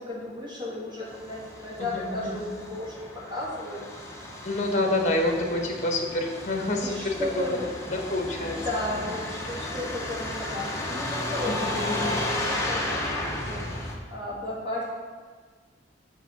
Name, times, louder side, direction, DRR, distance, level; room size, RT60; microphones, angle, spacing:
voice 1, 0.0-3.8 6.8-7.7 8.4-13.6 14.1-14.8, left 1 dB, 25° right, -7 dB, 2.4 m, -34 dB
Truck, 1.1-14.0, left 1 dB, 15° left, 0.8 m, -34 dB
voice 2, 1.8-2.4 4.4-7.6 7.9-8.6 11.4-12.1, left 2 dB, 40° left, 2 dB, 1.1 m, -28 dB
7.9 x 4.8 x 5.8 m, 1.5 s
head